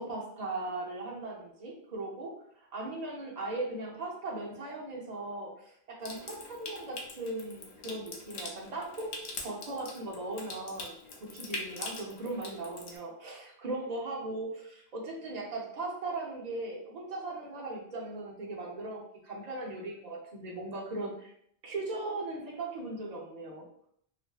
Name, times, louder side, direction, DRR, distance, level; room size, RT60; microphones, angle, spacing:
voice 1, 0.0-2.3 2.7-9.1 9.4-10.9 11.2-21.3 21.6-23.9, right 2 dB, 45° right, -1 dB, 0.6 m, -38 dB
Water tap faucet / Sink (filling or washing) / Trickle dribble, 6.0-13.0, left 3 dB, 80° left, 0.8 m, -43 dB
2.5 x 2.5 x 2.3 m, 0.67 s
omnidirectional pair, 1.1 m